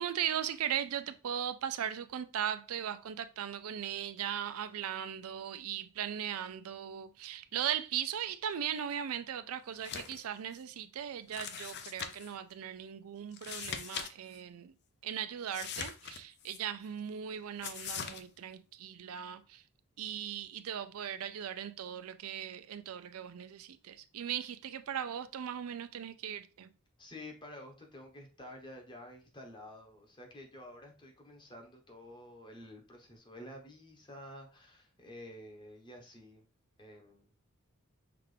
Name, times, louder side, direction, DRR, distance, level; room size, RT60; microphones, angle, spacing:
voice 1, 0.0-14.7 15.0-19.6 20.0-26.7, right 9 dB, 80° right, 0.4 m, -38 dB
sound 1, 9.7-10.2 10.5-10.6 11.3-12.3 13.3-14.1 14.3-14.4 15.5-16.6 17.6-18.2, left 7 dB, 50° left, 0.5 m, -41 dB
voice 2, 27.0-36.5 36.8-37.3, left 1 dB, 20° left, 1.0 m, -50 dB
5.8 x 2.5 x 3.3 m
head